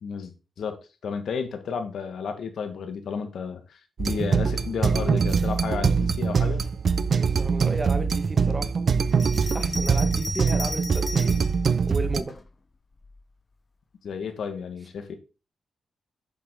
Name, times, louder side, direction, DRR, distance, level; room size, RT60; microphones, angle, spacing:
voice 1, 0.0-0.3 0.6-6.6 14.0-15.1, left 6 dB, 75° left, 1.4 m, -32 dB
sound 1, 4.0-12.2, right 5 dB, 50° right, 0.5 m, -23 dB
voice 2, 7.1-8.8 9.5-11.3 11.9-12.3, right 2 dB, 25° right, 1.3 m, -33 dB
Bell, 9.1-11.6 12.3-13.2, left 3 dB, 35° left, 0.7 m, -36 dB
7.6 x 7.0 x 3.7 m
wide cardioid pair, 115°, 0 cm